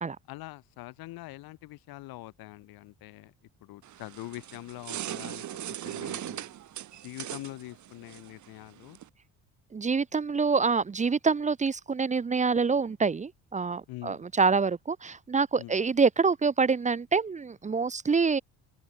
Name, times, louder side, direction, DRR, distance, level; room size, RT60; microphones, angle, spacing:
voice 1, 0.3-3.3 3.6-6.5 7.0-9.0 13.9-14.2 15.6-15.7, left 18 dB, 80° left, 3.7 m, -44 dB
sound 1, 3.8-9.1, right 12 dB, 55° right, 3.2 m, -40 dB
voice 2, 9.7-18.4, right 5 dB, 20° right, 1.1 m, -26 dB
open air
cardioid pair, 140°, 35 cm